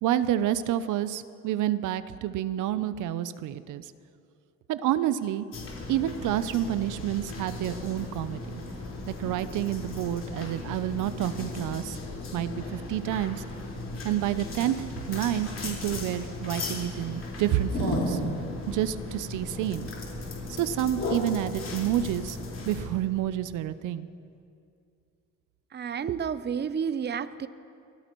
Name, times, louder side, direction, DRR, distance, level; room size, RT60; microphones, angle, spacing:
voice 1, 0.0-3.9 4.7-5.5 5.9-8.6 9.1-12.0 12.3-13.4 14.0-18.2 18.7-19.9 20.5-22.4 22.7-24.1, right 12 dB, 85° right, 14 dB, 0.6 m, -29 dB
sound 1, 5.5-22.9, left 2 dB, 60° left, 4.5 m, -35 dB
voice 2, 25.7-27.5, right 7 dB, 35° right, 13 dB, 0.6 m, -30 dB
23.5 x 16.5 x 3.1 m, 2.4 s
cardioid pair, 90°, 30 cm